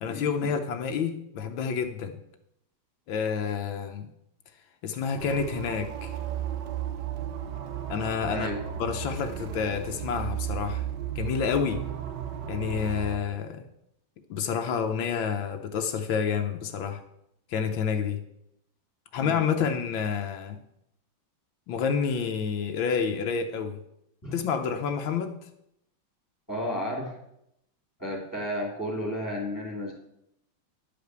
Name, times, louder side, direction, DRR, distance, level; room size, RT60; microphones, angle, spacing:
voice 1, 0.0-2.2 3.1-4.1 4.8-6.2 7.9-8.5 8.8-10.9 11.1-11.8 12.5-13.6 14.3-17.0 17.5-18.2 19.1-20.6 21.7-23.8 24.3-25.5, left 6 dB, 80° left, 6 dB, 1.6 m, -29 dB
sound 1, 5.2-13.2, right 9 dB, 65° right, 1.5 m, -34 dB
voice 2, 19.2-19.5 24.2-24.4 26.5-27.2 28.0-29.9, equal, 10° left, 0 dB, 2.8 m, -32 dB
11.0 x 5.1 x 8.0 m, 0.80 s
omnidirectional pair, 2.1 m